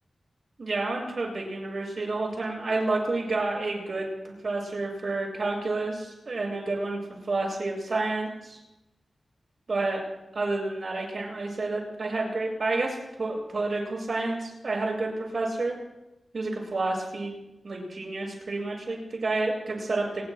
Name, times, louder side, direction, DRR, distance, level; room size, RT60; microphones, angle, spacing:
voice 1, 0.6-7.0 7.3-8.6 9.7-10.0 10.3-15.8 16.3-17.4 17.6-20.3, right 2 dB, 55° right, -1 dB, 7.0 m, -29 dB
27.5 x 20.0 x 2.3 m, 0.97 s
wide cardioid pair, 90°, 0 cm